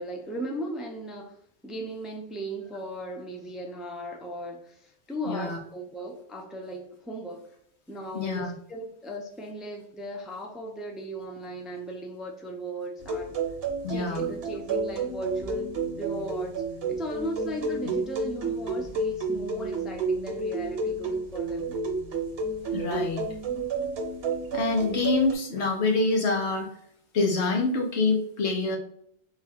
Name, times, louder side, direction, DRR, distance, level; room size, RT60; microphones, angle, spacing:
voice 1, 0.0-1.4 1.6-7.5 7.9-13.4 13.9-15.7 16.0-16.6 16.9-21.8, right 1 dB, ahead, 1 dB, 0.5 m, -37 dB
voice 2, 5.3-5.6 8.1-8.5 13.8-14.3 17.8-17.9 22.7-23.2 24.5-26.7 27.1-28.8, left 3 dB, 80° left, 2 dB, 1.2 m, -26 dB
sound 1, 13.0-25.3, right 3 dB, 65° right, 1.1 m, -31 dB
3.9 x 2.4 x 4.3 m, 0.65 s
omnidirectional pair, 1.1 m